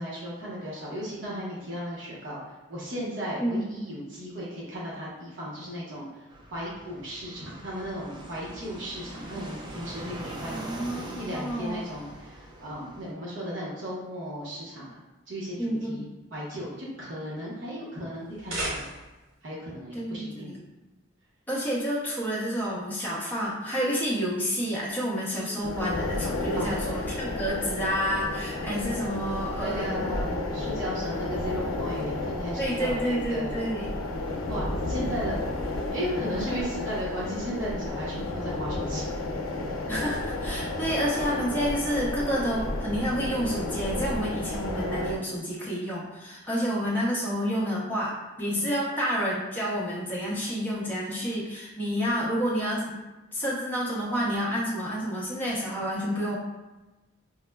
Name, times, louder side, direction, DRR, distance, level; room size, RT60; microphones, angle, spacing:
voice 1, 0.0-2.4 2.7-14.9 15.3-18.9 19.4-20.5 25.3-25.6 26.5-26.9 29.6-33.7 34.5-35.4 35.7-39.1 48.5-48.8, equal, 60° right, -6 dB, 0.8 m, -36 dB
voice 2, 3.4-3.7 10.5-11.8 15.6-16.0 19.9-20.6 21.5-30.1 32.6-33.9 39.9-53.0 53.3-56.4, equal, 10° left, -6 dB, 0.6 m, -29 dB
Fixed-wing aircraft airplane, 6.3-13.1, right 1 dB, 20° right, 0.3 m, -42 dB
sound 1, 18.2-19.3, right 1 dB, 90° right, 1.1 m, -34 dB
sound 2, 25.6-45.2, left 2 dB, 90° left, 0.5 m, -32 dB
4.9 x 2.0 x 2.2 m, 1.1 s
head